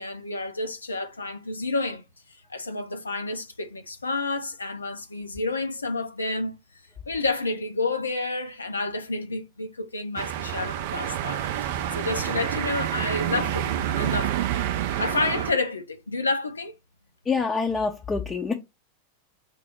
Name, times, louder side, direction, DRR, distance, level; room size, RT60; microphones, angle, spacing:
voice 1, 0.0-2.0 2.5-6.6 7.1-14.7 15.0-16.7, left 3 dB, 75° left, 0.6 m, -30 dB
sound 1, 10.2-15.5, right 11 dB, 50° right, 0.4 m, -28 dB
voice 2, 17.2-18.5, left 4 dB, 15° left, 0.5 m, -26 dB
4.7 x 2.0 x 4.3 m
figure-of-eight pair, 90°, 0 cm